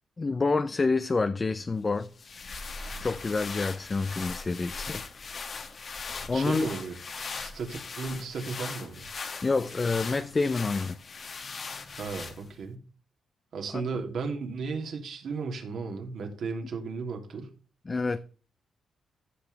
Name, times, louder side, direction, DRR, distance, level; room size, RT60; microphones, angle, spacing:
voice 1, 0.2-2.1 3.0-5.0 6.3-6.7 9.4-11.0 13.7-13.8 17.9-18.2, left 3 dB, 30° left, 0.6 m, -27 dB
sound 1, 2.0-12.7, left 4 dB, 45° left, 1.4 m, -39 dB
voice 2, 6.3-6.9 7.4-9.1 12.0-12.8 13.5-17.5, right 4 dB, 65° right, 2.9 m, -35 dB
14.5 x 6.1 x 3.4 m
cardioid pair, 100°, 0 cm